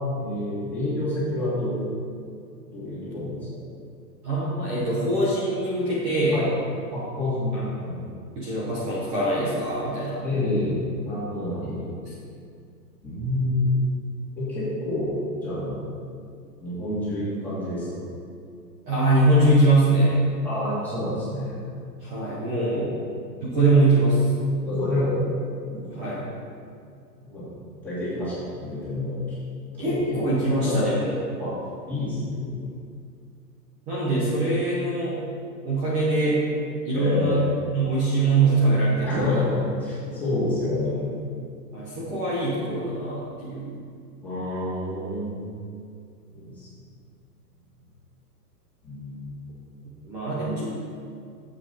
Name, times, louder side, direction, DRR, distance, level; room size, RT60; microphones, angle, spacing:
voice 1, 0.1-1.8 2.7-3.3 6.3-6.5 6.9-7.9 10.2-11.9 13.0-13.8 14.4-15.1 15.4-15.7 16.6-17.9 20.4-21.5 22.7-23.1 24.6-25.3 25.7-26.0 27.2-27.4 27.8-29.4 29.8-30.3 30.6-31.0 31.4-31.5 31.8-32.6 36.9-37.4 39.0-41.1 44.2-45.4 46.3-46.7 48.8-49.5, left 1 dB, 5° left, -12 dB, 2.7 m, -28 dB
voice 2, 4.2-6.4 7.5-7.9 8.4-10.2 11.6-11.7 18.8-20.2 22.0-22.9 23.4-24.3 25.9-26.3 29.8-31.1 33.9-35.2 35.6-36.4 36.8-37.4 37.7-39.4 41.7-43.7 50.0-50.7, right 2 dB, 15° right, -8 dB, 1.0 m, -23 dB
10.5 x 7.8 x 4.3 m, 2.3 s
hypercardioid pair, 170°, 50 cm